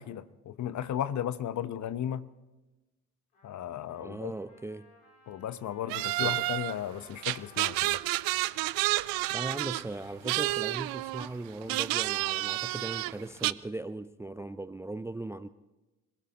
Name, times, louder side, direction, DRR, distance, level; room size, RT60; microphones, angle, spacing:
voice 1, 0.0-2.3 3.4-4.3 5.3-8.0, left 10 dB, 40° left, 1.1 m, -35 dB
Trumpet, 3.3-11.7, left 4 dB, 75° left, 4.7 m, -59 dB
voice 2, 4.0-4.9 6.2-6.5 9.3-15.5, right 2 dB, 5° right, 0.5 m, -38 dB
sound 1, 5.9-6.8 7.2-9.9 10.2-11.3 11.6-13.5, right 19 dB, 50° right, 0.6 m, -30 dB
27.0 x 17.0 x 3.0 m
figure-of-eight pair, 50°, 45 cm